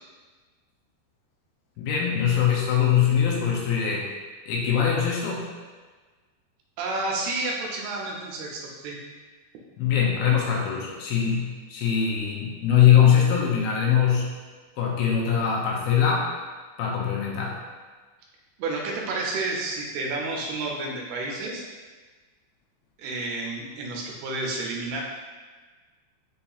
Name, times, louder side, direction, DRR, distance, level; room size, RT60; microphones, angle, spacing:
voice 1, 1.8-4.1 4.5-5.5 9.8-14.3 14.8-16.3 16.8-17.6, left 8 dB, 80° left, -2 dB, 2.4 m, -22 dB
voice 2, 6.8-9.0 18.6-21.6 23.0-25.0, right 2 dB, 80° right, -2 dB, 2.5 m, -30 dB
6.9 x 2.7 x 2.3 m, 1.4 s
omnidirectional pair, 4.7 m